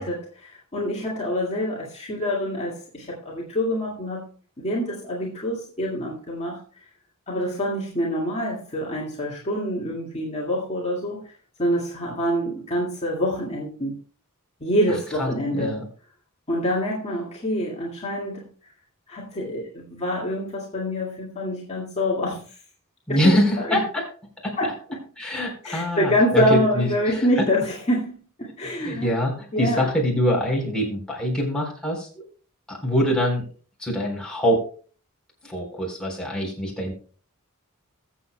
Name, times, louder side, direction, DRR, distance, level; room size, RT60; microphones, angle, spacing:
voice 1, 0.0-4.3 4.6-6.6 7.3-11.3 11.6-13.9 14.6-15.8 16.5-18.5 19.1-22.5 23.1-23.4 23.7-23.8 24.6-25.0 25.6-28.1 28.4-29.1 29.5-29.9, equal, 30° left, -4 dB, 2.0 m, -26 dB
voice 2, 23.1-24.0 24.4-24.6 25.2-27.4 28.6-32.2 32.7-33.4 33.8-34.6 35.4-36.9, equal, 5° left, -2 dB, 3.8 m, -24 dB
21.5 x 7.5 x 2.2 m, 0.41 s
head